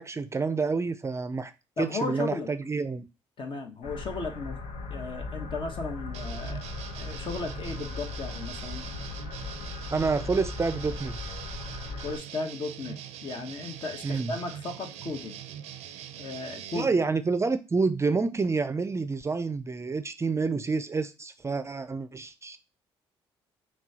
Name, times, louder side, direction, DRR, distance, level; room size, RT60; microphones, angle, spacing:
voice 1, 0.0-1.5 1.8-3.1 9.9-11.2 14.0-14.3 16.7-22.6, right 4 dB, 25° right, 0.4 m, -28 dB
voice 2, 1.8-2.5 3.4-4.6 4.9-6.6 6.9-8.9 12.0-15.4 16.2-16.9, left 3 dB, 50° left, 1.1 m, -35 dB
sound 1, 3.8-12.2, left 3 dB, 75° left, 1.0 m, -38 dB
sound 2, 6.1-16.8, right 10 dB, 80° right, 0.5 m, -42 dB
5.9 x 2.3 x 2.8 m
supercardioid pair, 70°, 11 cm